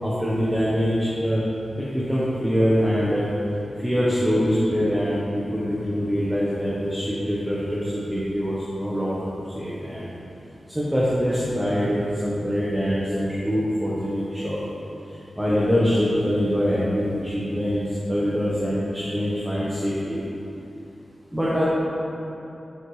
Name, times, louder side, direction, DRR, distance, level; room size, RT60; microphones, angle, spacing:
voice 1, 0.0-1.4 1.8-3.3 3.8-9.3 9.5-10.1 10.7-14.6 15.4-20.2 21.3-21.6, equal, 5° right, -8 dB, 1.3 m, -24 dB
8.7 x 7.6 x 3.4 m, 2.9 s
wide cardioid pair, 95°, 0 cm